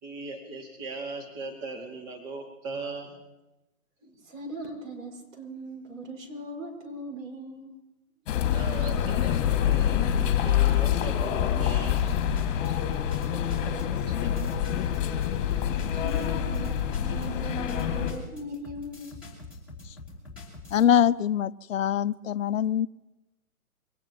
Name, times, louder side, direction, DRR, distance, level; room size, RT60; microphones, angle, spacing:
voice 1, 0.0-3.2 4.0-4.1 8.5-12.2 12.6-12.8 14.1-14.3, right 3 dB, 30° right, 1 dB, 2.6 m, -39 dB
voice 2, 4.2-7.8 12.7-12.9 13.7-13.9 14.1-14.2 15.6-19.1, right 1 dB, 65° right, 2 dB, 5.9 m, -39 dB
sound 1, 8.3-18.1, left 10 dB, 35° left, 2.3 m, -26 dB
sound 2, 11.8-20.9, left 3 dB, 5° right, 4.8 m, -45 dB
voice 3, 20.7-22.9, left 9 dB, 65° left, 17 dB, 0.5 m, -23 dB
24.0 x 18.5 x 3.1 m, 1.0 s
hypercardioid pair, 135°, 44 cm